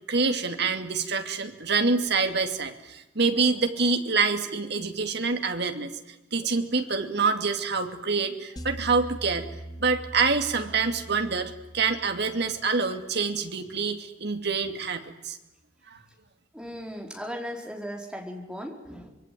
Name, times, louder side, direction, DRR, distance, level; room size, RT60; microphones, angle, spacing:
voice 1, 0.1-5.9 6.3-15.4 15.9-16.0, right 4 dB, 60° right, 6 dB, 2.6 m, -26 dB
sound 1, 8.6-12.9, right 1 dB, 20° left, 2.3 m, -42 dB
voice 2, 16.5-19.1, equal, 5° right, 1 dB, 4.4 m, -37 dB
25.0 x 23.0 x 9.4 m, 0.94 s
head